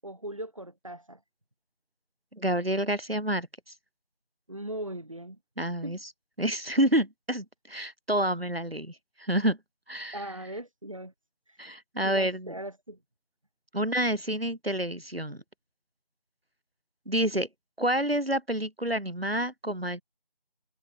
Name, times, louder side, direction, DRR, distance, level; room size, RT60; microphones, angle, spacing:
voice 1, 0.0-1.2 4.5-5.4 5.8-6.0 10.1-11.1 11.5-11.6 12.0-13.0, right 1 dB, 35° right, 7.3 m, -39 dB
voice 2, 2.3-3.5 5.6-6.0 6.4-8.9 9.2-9.6 9.9-10.2 11.6-12.5 13.7-15.4 17.1-17.5 17.8-20.0, right 1 dB, 80° right, 6.7 m, -28 dB
figure-of-eight pair, 175°, 29 cm